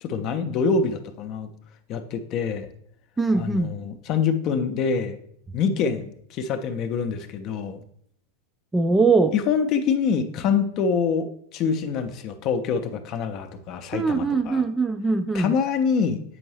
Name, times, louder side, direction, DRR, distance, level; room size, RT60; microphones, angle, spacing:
voice 1, 0.0-1.5 1.9-2.7 3.3-5.2 5.5-7.8 9.3-14.6 15.3-16.2, left 6 dB, 35° left, 9 dB, 0.6 m, -25 dB
voice 2, 3.2-3.7 8.7-9.3 13.9-15.5, right 4 dB, 10° right, 9 dB, 0.3 m, -21 dB
7.8 x 5.2 x 3.1 m, 0.69 s
figure-of-eight pair, 90°, 0 cm